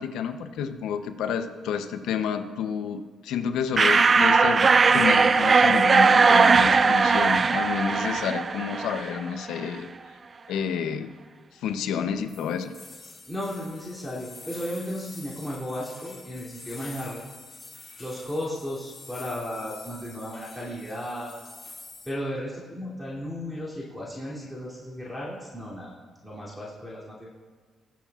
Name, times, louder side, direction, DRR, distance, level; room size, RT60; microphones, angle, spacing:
voice 1, 0.0-4.7 4.9-9.9 10.5-11.1 11.5-12.8, left 7 dB, 85° left, 8 dB, 0.7 m, -29 dB
sound 1, 3.8-9.3, right 4 dB, 35° right, 0.3 m, -19 dB
sound 2, 12.3-22.1, left 3 dB, 35° left, 2.2 m, -46 dB
voice 2, 13.3-17.2 18.0-21.3 22.0-25.9 26.2-27.3, equal, 5° right, -6 dB, 2.9 m, -34 dB
20.5 x 7.1 x 2.4 m, 1.5 s
cardioid pair, 90°, 0 cm